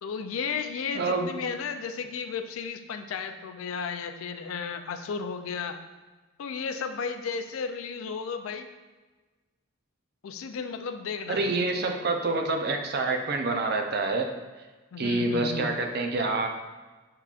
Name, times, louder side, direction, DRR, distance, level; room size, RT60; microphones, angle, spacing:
voice 1, 0.0-5.8 6.4-8.7 10.2-11.4 14.9-15.7, left 5 dB, 80° left, 8 dB, 0.4 m, -34 dB
voice 2, 0.9-1.3 11.3-14.3 15.0-16.5, right 3 dB, 50° right, 4 dB, 0.4 m, -27 dB
5.6 x 3.6 x 2.4 m, 1.2 s
head